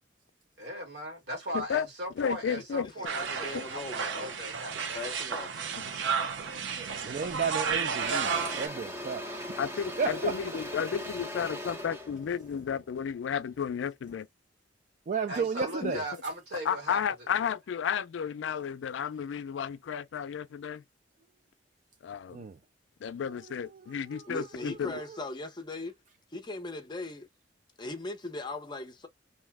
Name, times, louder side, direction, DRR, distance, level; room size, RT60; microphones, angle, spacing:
voice 1, 0.6-5.1 6.9-7.2 15.3-17.0, right 1 dB, 65° right, 1.6 m, -38 dB
voice 2, 1.5-1.9 2.2-2.9 3.5-3.6 9.6-14.3 15.8-15.9 16.7-20.8 22.0-22.5 23.0-25.0, left 7 dB, 80° left, 0.3 m, -32 dB
voice 3, 3.0-4.4 4.9-5.9 24.3-25.9 26.3-27.3 27.8-29.1, left 2 dB, 25° left, 0.6 m, -39 dB
sound 1, 3.1-8.7, right 6 dB, 90° right, 0.6 m, -32 dB
Engine / Drill, 7.0-7.3 7.6-13.7, left 1 dB, 15° right, 0.7 m, -40 dB
voice 4, 7.0-9.4 10.0-10.4 15.1-16.0 22.3-22.6 23.7-23.8 24.1-24.9, right 5 dB, 45° right, 0.3 m, -33 dB
2.7 x 2.0 x 3.3 m
head